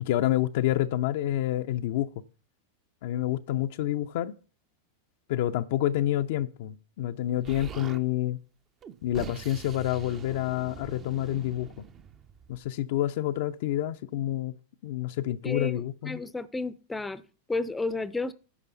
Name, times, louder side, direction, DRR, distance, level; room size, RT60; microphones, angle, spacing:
voice 1, 0.0-2.1 3.0-4.3 5.3-8.4 9.0-11.7 12.5-14.5 14.8-16.2, left 13 dB, 50° left, 0.5 m, -28 dB
Explosion, 7.4-8.0 8.8-12.7, right 7 dB, 30° right, 0.7 m, -44 dB
voice 2, 15.4-17.2 17.5-18.3, left 3 dB, 10° left, 0.6 m, -32 dB
9.9 x 5.4 x 6.9 m
figure-of-eight pair, 90°, 0 cm